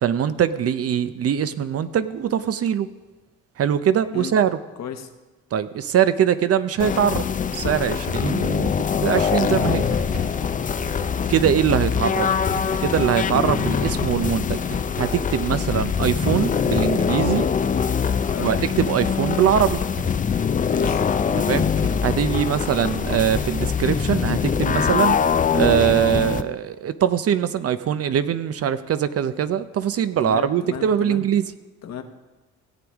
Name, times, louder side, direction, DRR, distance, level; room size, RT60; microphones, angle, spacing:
voice 1, 0.0-2.9 3.6-4.6 5.5-7.2 7.5-9.9 11.3-12.3 12.8-14.6 14.9-17.5 18.4-19.8 21.4-21.7 22.0-25.2 25.5-31.5, right 9 dB, 50° right, 13 dB, 0.6 m, -22 dB
voice 2, 4.8-5.1 18.3-18.6 20.6-21.0 30.2-31.3 31.8-32.0, left 8 dB, 60° left, 7 dB, 1.1 m, -33 dB
sound 1, 6.8-26.4, left 7 dB, 25° left, 0.4 m, -23 dB
sound 2, 9.4-11.9 12.2-13.4 13.7-14.8 15.1-15.9 16.2-16.7 17.1-18.0 18.5-19.2 19.5-20.5 20.8-22.2 22.9-23.4, right 3 dB, 80° right, 2.4 m, -36 dB
17.0 x 7.9 x 3.6 m, 1.2 s
cardioid pair, 90°, 30 cm